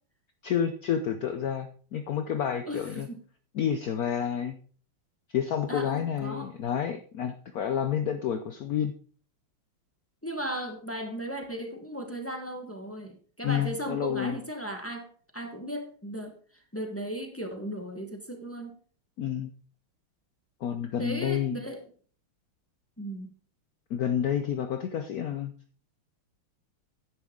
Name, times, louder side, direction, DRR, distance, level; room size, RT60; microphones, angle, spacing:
voice 1, 0.4-3.1 3.5-4.6 5.3-8.9 13.4-14.4 19.2-19.5 20.6-21.6 23.9-25.5, left 9 dB, 80° left, 8 dB, 0.8 m, -29 dB
voice 2, 2.6-3.2 5.7-6.5 10.2-15.1 15.3-16.3 16.7-18.8 21.0-21.9 23.0-23.3, right 1 dB, 10° left, 5 dB, 0.8 m, -36 dB
10.0 x 9.5 x 3.7 m, 0.42 s
omnidirectional pair, 2.4 m